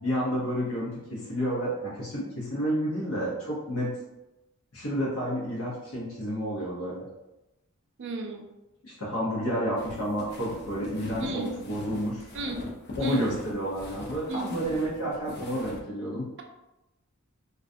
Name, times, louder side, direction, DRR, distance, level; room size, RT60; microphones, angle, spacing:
voice 1, 0.0-4.0 4.7-7.0 8.8-12.3 13.0-16.3, equal, 75° left, -5 dB, 0.8 m, -30 dB
voice 2, 8.0-8.4 11.2-11.5 12.3-12.6 13.0-13.3 14.3-14.5, right 2 dB, 60° right, 3 dB, 0.4 m, -33 dB
sound 1, 9.8-15.8, left 2 dB, 50° left, 0.5 m, -42 dB
2.4 x 2.2 x 2.5 m, 0.96 s
head